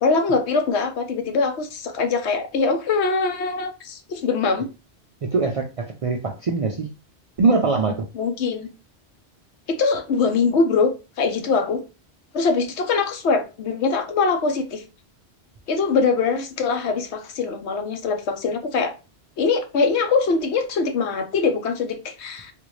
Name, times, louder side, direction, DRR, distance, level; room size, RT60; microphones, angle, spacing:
voice 1, 0.0-4.7 8.1-8.7 9.7-11.8 12.3-14.8 15.7-18.9 19.4-22.5, left 4 dB, 85° left, 6 dB, 1.0 m, -22 dB
voice 2, 5.2-6.9 7.4-8.1, right 3 dB, 60° right, 2 dB, 0.3 m, -22 dB
3.6 x 2.5 x 3.1 m, 0.30 s
omnidirectional pair, 1.1 m